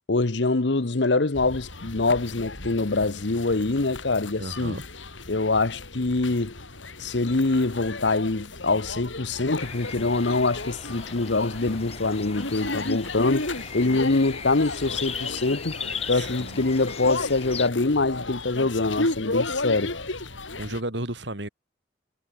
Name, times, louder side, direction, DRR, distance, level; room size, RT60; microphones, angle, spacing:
voice 1, 0.1-4.8 5.3-6.6 7.0-15.8 16.1-19.9, left 3 dB, 70° left, 1.0 m, -24 dB
sound 1, 1.3-20.8, left 2 dB, 85° left, 7.2 m, -34 dB
voice 2, 4.4-4.8 16.1-16.7 20.6-21.5, right 1 dB, 70° right, 4.2 m, -33 dB
sound 2, 9.6-17.7, left 6 dB, 30° left, 4.1 m, -38 dB
head